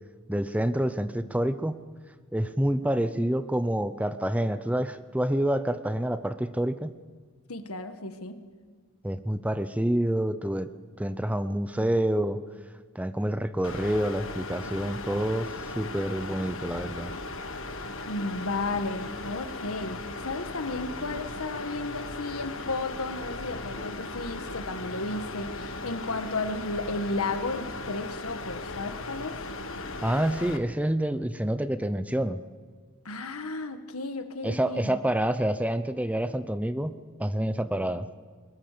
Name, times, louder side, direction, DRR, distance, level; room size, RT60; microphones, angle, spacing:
voice 1, 0.3-1.8 2.3-7.0 9.0-10.7 11.0-12.4 12.9-17.1 30.0-32.4 34.4-38.1, right 1 dB, 5° right, 12 dB, 0.7 m, -28 dB
voice 2, 7.5-8.4 18.1-20.0 20.2-29.4 33.1-34.9, left 2 dB, 90° left, 8 dB, 1.7 m, -33 dB
sound 1, 13.6-30.6, left 2 dB, 65° left, 1.5 m, -37 dB
21.5 x 20.5 x 6.9 m, 1.5 s
head